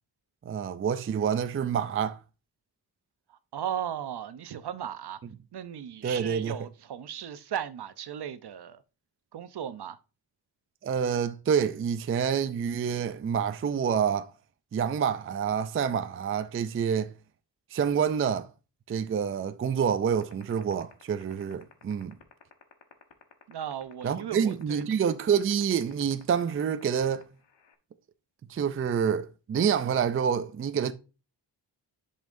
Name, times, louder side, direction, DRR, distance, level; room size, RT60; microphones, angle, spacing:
voice 1, 0.4-2.2 6.0-6.6 10.8-14.3 14.7-17.1 17.7-18.5 18.9-22.1 24.0-27.3 28.5-30.9, right 7 dB, 35° right, 0.4 m, -27 dB
voice 2, 3.3-5.2 5.5-8.8 9.3-10.0 23.5-25.0, right 9 dB, 65° right, 0.7 m, -36 dB
sound 1, 20.2-27.7, left 9 dB, 85° left, 1.2 m, -51 dB
10.5 x 5.5 x 2.6 m
wide cardioid pair, 155°, 42 cm